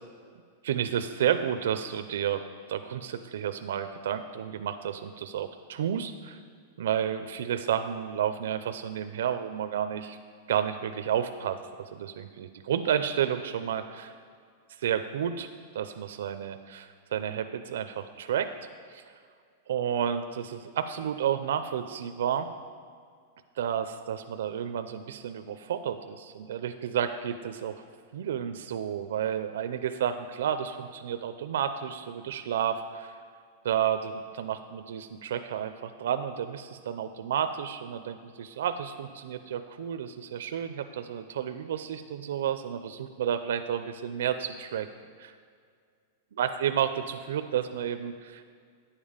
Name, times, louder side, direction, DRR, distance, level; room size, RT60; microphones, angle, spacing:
voice 1, 0.6-2.4 2.7-6.4 6.8-10.2 10.5-14.1 14.8-15.5 15.7-18.5 18.9-19.1 19.7-22.5 23.6-27.8 28.1-33.2 33.6-44.9 45.2-45.3 46.4-48.4, right 9 dB, 75° right, 9 dB, 0.4 m, -31 dB
9.8 x 7.2 x 5.0 m, 2.1 s
supercardioid pair, 175°, 0 cm